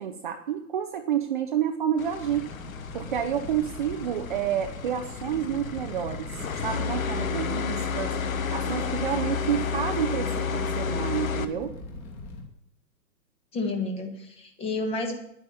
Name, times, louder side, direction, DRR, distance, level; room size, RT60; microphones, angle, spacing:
voice 1, 0.0-2.5 2.9-6.4 6.6-8.1 8.5-11.7, right 9 dB, 30° right, 5 dB, 0.8 m, -29 dB
sound 1, 2.0-11.4, left 5 dB, 55° left, 1.2 m, -31 dB
Fire, 2.1-12.4, left 2 dB, 25° left, 2.8 m, -41 dB
voice 2, 13.5-15.2, left 3 dB, 10° left, 4 dB, 1.4 m, -30 dB
10.5 x 9.6 x 6.9 m, 0.78 s
figure-of-eight pair, 130°, 50 cm